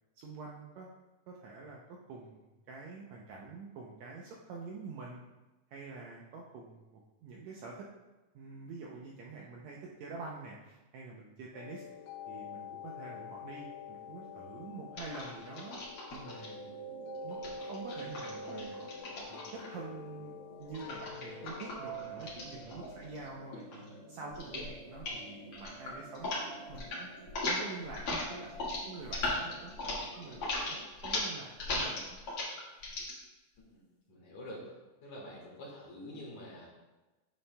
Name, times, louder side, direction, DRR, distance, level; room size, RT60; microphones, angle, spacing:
voice 1, 0.2-0.9 1.3-5.2 5.7-7.9 8.4-11.8 12.3-15.8 16.1-16.7 17.2-23.8 24.1-26.3 26.7-27.1 27.4-32.2, right 4 dB, 75° right, -2 dB, 1.6 m, -47 dB
sound 1, 11.5-21.8, left 10 dB, 90° left, 2.2 m, -48 dB
sound 2, 15.0-16.5 17.3-19.8 20.7-23.3 23.5-23.9 24.3-24.7 25.0-25.2 25.5-26.4 26.7-27.0 27.3-33.1, left 2 dB, 45° left, 2.3 m, -37 dB
sound 3, 16.2-30.9, right 3 dB, 50° right, 2.0 m, -48 dB
voice 2, 34.1-34.6 35.0-36.7, equal, 70° left, -4 dB, 2.8 m, -46 dB
9.0 x 6.9 x 2.2 m, 1.1 s
omnidirectional pair, 3.7 m